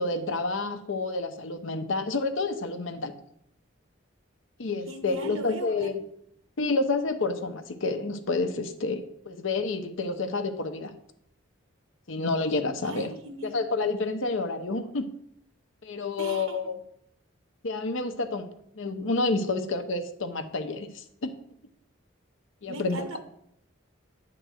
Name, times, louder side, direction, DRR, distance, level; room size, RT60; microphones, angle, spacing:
voice 1, 0.0-3.1 4.6-6.0 6.6-10.9 12.1-15.1 15.8-16.8 17.6-18.5 18.8-21.3 22.6-23.1, left 3 dB, 70° left, 7 dB, 0.7 m, -29 dB
voice 2, 4.9-5.9 12.8-13.6 16.2-16.6 22.7-23.2, right 2 dB, 85° right, 6 dB, 1.0 m, -39 dB
9.1 x 3.9 x 6.3 m, 0.72 s
head